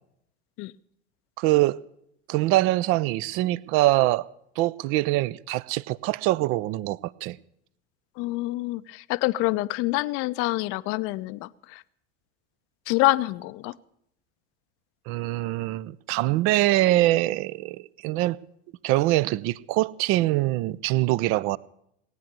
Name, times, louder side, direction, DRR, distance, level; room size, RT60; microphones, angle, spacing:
voice 1, 1.4-1.8 2.3-4.3 4.6-7.4 15.1-18.4 18.8-21.6, right 17 dB, 40° right, 0.5 m, -24 dB
voice 2, 8.2-11.8 12.9-13.8, left 19 dB, 40° left, 0.6 m, -26 dB
18.5 x 9.5 x 6.8 m
figure-of-eight pair, 70°, 34 cm